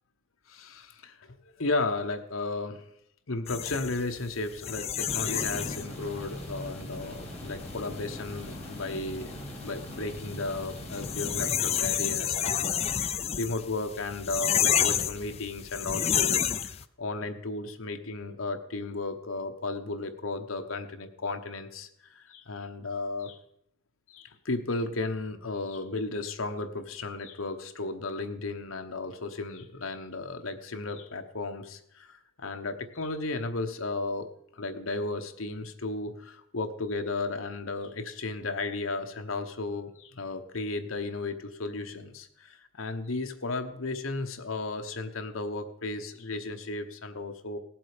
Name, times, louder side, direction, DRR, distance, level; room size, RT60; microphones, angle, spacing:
voice 1, 0.5-2.8 3.3-9.3 9.6-16.4 16.6-23.4 24.1-47.6, left 3 dB, 75° left, 7 dB, 1.1 m, -34 dB
sound 1, 3.5-16.8, left 9 dB, 30° left, 0.4 m, -30 dB
sound 2, 5.0-11.5, left 1 dB, 5° left, 3.0 m, -41 dB
18.0 x 7.6 x 5.1 m, 0.75 s
head